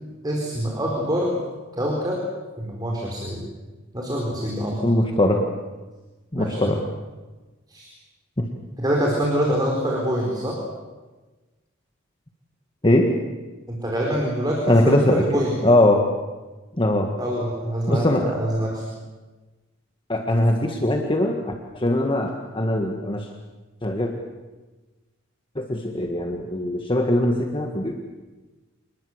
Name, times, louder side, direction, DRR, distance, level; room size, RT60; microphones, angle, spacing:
voice 1, 0.2-1.4 1.7-2.2 2.6-3.4 3.9-4.9 6.4-6.7 7.7-7.9 8.8-10.5 13.7-15.6 17.2-18.8, equal, 20° right, -2 dB, 4.6 m, -25 dB
voice 2, 4.8-5.4 6.3-6.8 8.4-8.5 12.8-13.1 14.7-15.2 15.6-16.0 16.8-17.1 17.9-18.2 20.1-23.3 23.8-24.1 25.6-27.9, left 1 dB, 25° left, 2 dB, 1.7 m, -21 dB
26.5 x 20.0 x 8.1 m, 1.2 s
head